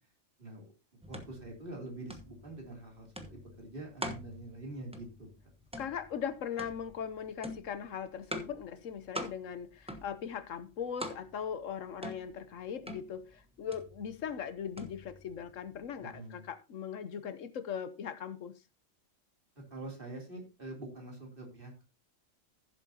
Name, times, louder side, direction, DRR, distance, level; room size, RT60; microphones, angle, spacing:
sound 1, 1.0-16.2, equal, 5° right, 1.0 m, -46 dB
voice 1, 1.1-5.3 16.0-16.5 19.7-21.8, right 2 dB, 45° right, 3.2 m, -45 dB
voice 2, 5.8-18.5, left 8 dB, 80° left, 1.2 m, -39 dB
15.5 x 7.4 x 2.8 m
omnidirectional pair, 1.3 m